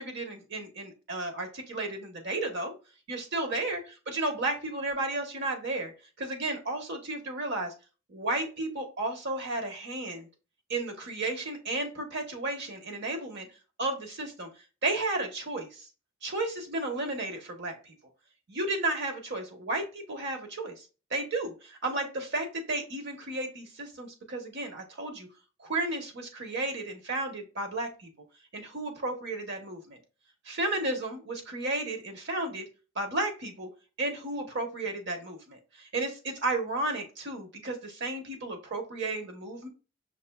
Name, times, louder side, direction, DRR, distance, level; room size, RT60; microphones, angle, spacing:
voice 1, 0.0-2.7 3.1-3.8 4.1-5.9 6.2-7.7 8.1-10.3 10.7-13.5 13.8-14.5 14.8-15.8 16.2-17.9 18.5-20.8 21.1-25.3 25.6-28.1 28.5-30.0 30.5-32.7 32.9-33.7 34.0-39.7, right 2 dB, 60° right, 4 dB, 1.0 m, -33 dB
5.8 x 2.7 x 2.2 m, 0.33 s
head